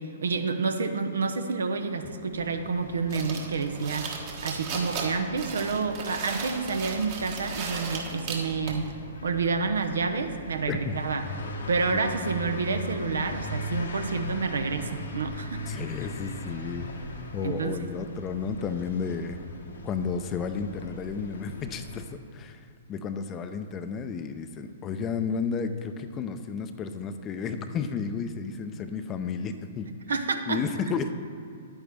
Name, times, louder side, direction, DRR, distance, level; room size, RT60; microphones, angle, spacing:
voice 1, 0.0-4.1 4.4-8.9 9.2-11.3 11.7-15.7 17.4-17.9 30.1-30.6, right 4 dB, 70° right, 7 dB, 0.7 m, -29 dB
sound 1, 2.3-22.0, left 1 dB, 75° left, 1.2 m, -39 dB
sound 2, 3.1-8.9, right 5 dB, 45° right, 1.4 m, -36 dB
voice 2, 10.7-11.0 11.9-12.0 15.7-16.9 17.3-19.4 19.8-29.9 30.5-31.1, left 5 dB, 25° left, 9 dB, 0.6 m, -32 dB
9.9 x 8.9 x 3.5 m, 2.3 s
figure-of-eight pair, 115°, 0 cm